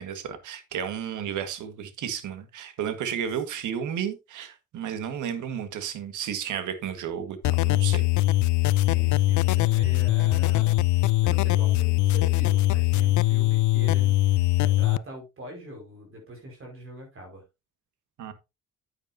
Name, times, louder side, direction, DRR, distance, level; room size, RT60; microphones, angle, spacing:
voice 1, 0.0-8.1 18.2-18.3, right 8 dB, 80° right, 1.7 m, -33 dB
sound 1, 7.4-15.0, left 17 dB, 75° left, 0.5 m, -22 dB
voice 2, 8.8-17.4, right 1 dB, 45° right, 5.0 m, -43 dB
9.4 x 8.9 x 2.7 m
cardioid pair, 90°, 30 cm